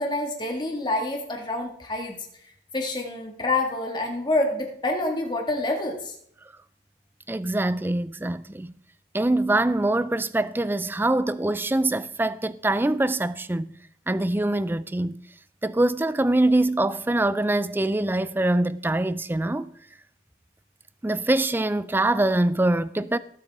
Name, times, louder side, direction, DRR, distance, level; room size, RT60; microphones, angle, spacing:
voice 1, 0.0-2.2 2.7-6.2, left 2 dB, 25° left, 1.9 m, -27 dB
voice 2, 7.3-8.7 9.1-13.8 14.1-15.2 15.6-19.7 21.0-23.2, right 2 dB, 10° right, 0.3 m, -24 dB
18.5 x 7.5 x 3.6 m
head